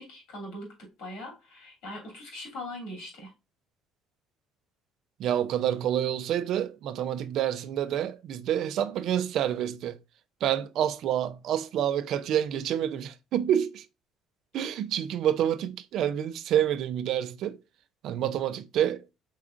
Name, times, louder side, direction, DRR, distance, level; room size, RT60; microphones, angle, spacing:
voice 1, 0.0-3.3, left 1 dB, 80° left, 2.7 m, -41 dB
voice 2, 5.2-10.0 10.4-13.9 14.5-17.6 18.0-19.0, right 10 dB, 65° right, 0.5 m, -28 dB
4.7 x 3.6 x 2.5 m
cardioid pair, 100°, 0 cm